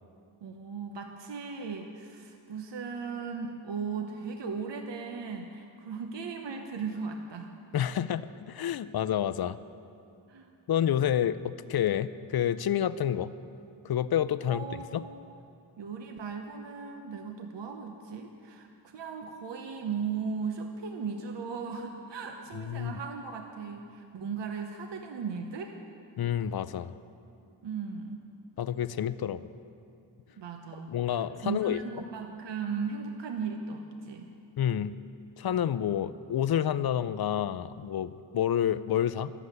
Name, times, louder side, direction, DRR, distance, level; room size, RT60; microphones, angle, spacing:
voice 1, 0.4-7.5 10.3-10.5 14.4-15.2 15.8-25.7 27.6-28.3 30.4-30.9 31.4-34.3, right 5 dB, 70° right, 4 dB, 1.0 m, -37 dB
voice 2, 7.7-9.6 10.7-13.3 13.8-14.7 14.9-15.0 22.6-23.0 26.2-26.9 28.6-29.4 30.9-31.8 34.6-34.9 35.4-39.3, left 10 dB, 55° left, 15 dB, 0.5 m, -29 dB
11.5 x 8.1 x 9.5 m, 2.5 s
cardioid pair, 85°, 45 cm